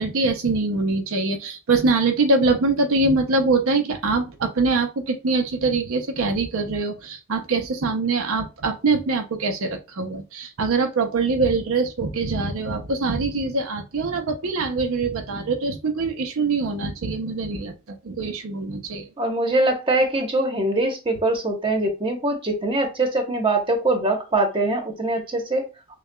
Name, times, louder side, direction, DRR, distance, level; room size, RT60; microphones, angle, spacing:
voice 1, 0.0-19.1, right 3 dB, 70° right, 5 dB, 0.6 m, -23 dB
voice 2, 19.2-25.6, right 2 dB, 25° right, 3 dB, 0.9 m, -23 dB
6.4 x 2.2 x 2.2 m, 0.30 s
head